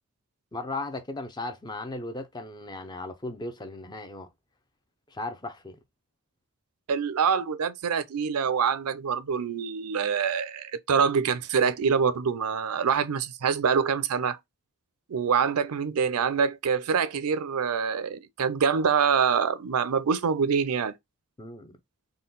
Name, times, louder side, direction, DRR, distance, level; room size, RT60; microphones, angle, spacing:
voice 1, 0.5-4.3 5.1-5.8 21.4-21.8, left 2 dB, 20° left, 0.5 m, -36 dB
voice 2, 6.9-14.4 15.1-20.9, right 6 dB, 85° right, 0.5 m, -25 dB
3.8 x 2.2 x 3.8 m
head